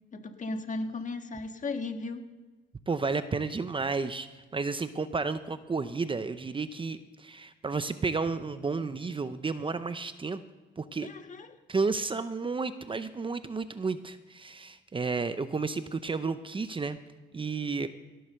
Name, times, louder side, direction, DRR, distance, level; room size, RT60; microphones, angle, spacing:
voice 1, 0.1-2.2 11.0-11.5, left 3 dB, 40° left, 6 dB, 1.6 m, -36 dB
voice 2, 2.9-10.4 10.8-11.1 11.7-17.0 17.3-17.9, right 4 dB, 25° right, 11 dB, 0.8 m, -32 dB
17.5 x 7.9 x 6.7 m, 1.2 s
cardioid pair, 90°, 20 cm